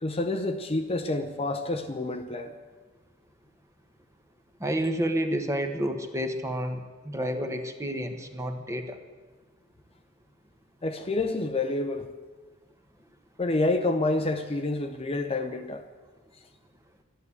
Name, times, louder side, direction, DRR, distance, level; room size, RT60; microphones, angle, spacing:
voice 1, 0.0-2.5 10.8-12.1 13.4-15.9, left 2 dB, 30° left, 0.7 m, -28 dB
voice 2, 4.6-9.0, equal, 15° right, 1.2 m, -30 dB
12.5 x 11.0 x 8.4 m
head